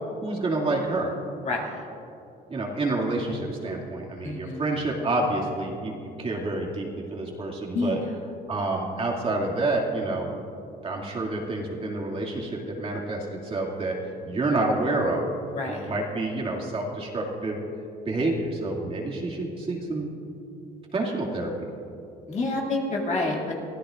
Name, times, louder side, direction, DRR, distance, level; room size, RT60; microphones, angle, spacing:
voice 1, 0.2-1.1 2.5-8.0 8.5-10.3 10.8-14.0 14.3-15.2 15.6-17.6 18.0-20.1 20.9-21.5, right 2 dB, 35° right, -2 dB, 2.4 m, -28 dB
voice 2, 1.4-1.8 4.2-4.6 7.7-8.1 15.5-15.9 22.3-23.6, left 2 dB, 45° left, -1 dB, 2.5 m, -28 dB
24.0 x 15.0 x 2.6 m, 2.8 s
cardioid pair, 110°, 17 cm